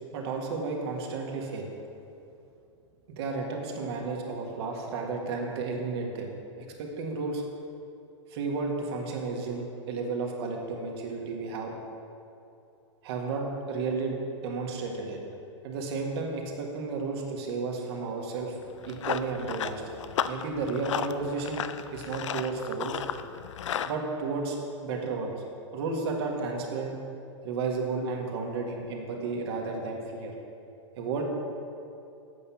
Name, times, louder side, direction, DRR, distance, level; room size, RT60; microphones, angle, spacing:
voice 1, 0.1-1.7 3.1-6.3 6.6-7.4 8.3-11.7 13.0-15.2 15.6-18.6 18.8-19.8 20.3-21.7 21.9-23.0 23.8-24.6 24.8-25.4 25.7-27.0 27.4-30.3 31.0-31.2, right 4 dB, 55° right, 1 dB, 1.7 m, -32 dB
Run, 18.6-23.9, left 9 dB, 75° left, 0.5 m, -34 dB
8.5 x 5.5 x 7.1 m, 2.6 s
hypercardioid pair, 120°, 16 cm